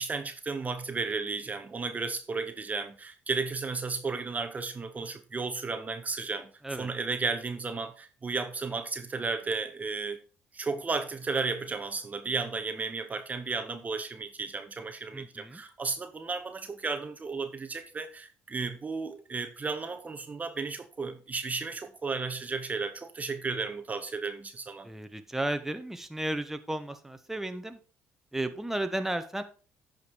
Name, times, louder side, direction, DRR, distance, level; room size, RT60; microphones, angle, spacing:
voice 1, 0.0-6.5 6.8-10.2 10.5-24.9, right 4 dB, 30° right, 0.9 m, -34 dB
voice 2, 15.1-15.6 24.8-27.8 28.3-29.4, right 1 dB, 5° right, 1.1 m, -33 dB
9.4 x 5.3 x 4.6 m
supercardioid pair, 70°, 5 cm